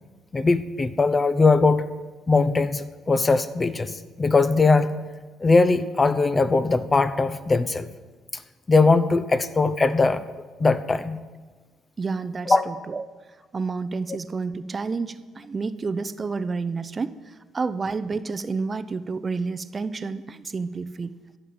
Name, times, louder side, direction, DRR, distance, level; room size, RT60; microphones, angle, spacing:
voice 1, 0.3-1.8 2.3-4.9 5.4-7.9 8.7-10.2 10.6-11.2 12.5-12.7, left 3 dB, 30° left, 12 dB, 0.9 m, -20 dB
voice 2, 12.0-13.1 13.5-21.1, right 4 dB, 35° right, 13 dB, 0.7 m, -30 dB
13.0 x 7.3 x 8.6 m, 1.4 s
hypercardioid pair, 60°, 0 cm